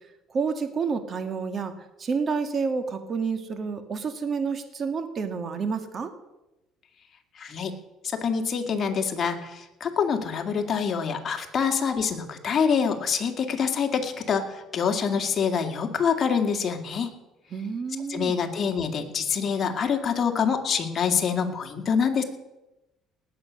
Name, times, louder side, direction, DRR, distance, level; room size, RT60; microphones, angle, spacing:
voice 1, 0.3-1.7 2.0-6.1 17.5-18.4, right 5 dB, 40° right, 8 dB, 1.9 m, -29 dB
voice 2, 7.4-7.7 8.1-17.1 18.1-22.2, left 6 dB, 40° left, 4 dB, 2.2 m, -26 dB
19.0 x 8.1 x 6.4 m, 0.99 s
cardioid pair, 100°, 0 cm